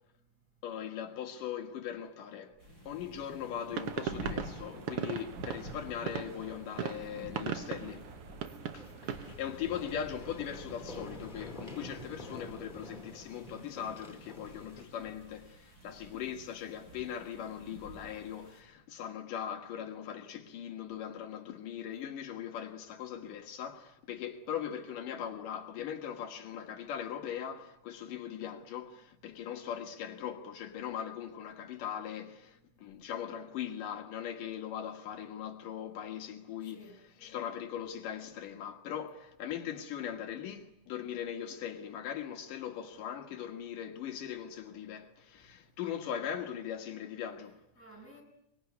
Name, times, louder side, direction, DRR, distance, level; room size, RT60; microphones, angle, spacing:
voice 1, 0.6-2.5 2.9-8.0 8.7-8.8 9.3-36.8 37.2-47.6, left 9 dB, 75° left, 3.1 m, -40 dB
sound 1, 2.6-18.6, right 1 dB, 25° right, 6.9 m, -50 dB
sound 2, 3.7-9.4, right 8 dB, 60° right, 1.7 m, -39 dB
sound 3, 5.5-7.0 7.3-7.4 8.8-14.8, left 1 dB, 15° left, 5.2 m, -49 dB
voice 2, 8.6-9.7 36.7-37.0 47.8-48.2, right 1 dB, 5° right, 6.7 m, -55 dB
24.0 x 22.5 x 9.5 m
omnidirectional pair, 3.8 m